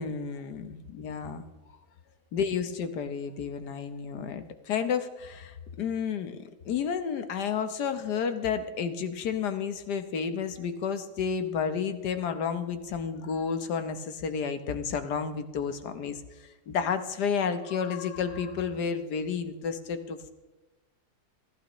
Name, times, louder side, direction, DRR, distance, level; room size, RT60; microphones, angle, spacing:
voice 1, 0.0-1.4 2.3-20.3, left 6 dB, 80° left, 9 dB, 1.6 m, -31 dB
29.5 x 11.5 x 3.1 m, 1.1 s
omnidirectional pair, 1.7 m